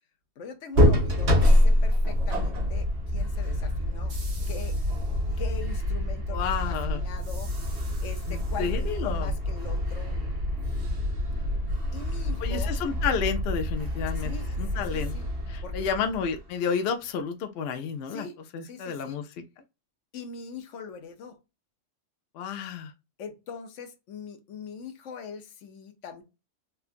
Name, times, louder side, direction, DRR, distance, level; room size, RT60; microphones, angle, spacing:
voice 1, 0.4-4.2 4.5-4.8 5.4-7.5 8.0-10.2 11.9-12.7 14.2-15.3 15.6-16.1 18.1-18.4 18.6-19.2 20.1-21.4 23.2-26.2, left 6 dB, 80° left, 1.0 m, -42 dB
sound 1, 0.7-16.5, left 1 dB, 65° right, 1.5 m, -26 dB
voice 2, 6.3-7.0 8.3-9.3 12.4-14.3 14.6-15.1 15.5-18.3 18.5-19.3 22.3-22.9, left 6 dB, 65° left, 0.7 m, -31 dB
4.4 x 2.3 x 2.4 m
omnidirectional pair, 1.2 m